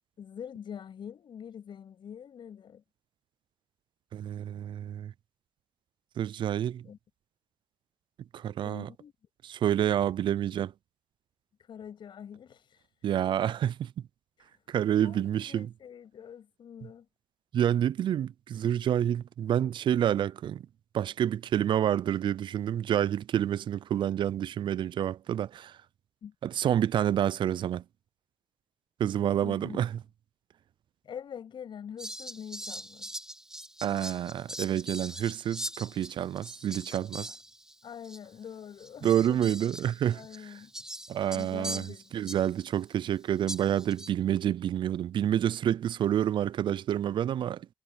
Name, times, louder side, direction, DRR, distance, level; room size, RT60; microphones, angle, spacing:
voice 1, 0.2-2.8 6.8-7.0 8.6-9.1 11.6-12.9 14.4-14.8 15.0-17.1 26.2-26.3 29.4-29.8 31.0-33.1 37.8-39.6 40.1-40.7 41.3-42.1, left 8 dB, 65° left, 7.3 m, -44 dB
voice 2, 4.1-5.1 6.2-6.9 8.3-8.9 9.4-10.7 13.0-13.9 14.7-15.7 17.5-20.7 20.9-25.8 26.4-27.8 29.0-29.9 33.8-37.3 39.0-40.2 41.1-47.7, right 10 dB, 65° right, 0.5 m, -28 dB
Fowl, 32.0-37.8 38.0-38.2 38.8-42.7 43.5-44.1, right 1 dB, 5° right, 2.5 m, -42 dB
supercardioid pair, 55°, 9 cm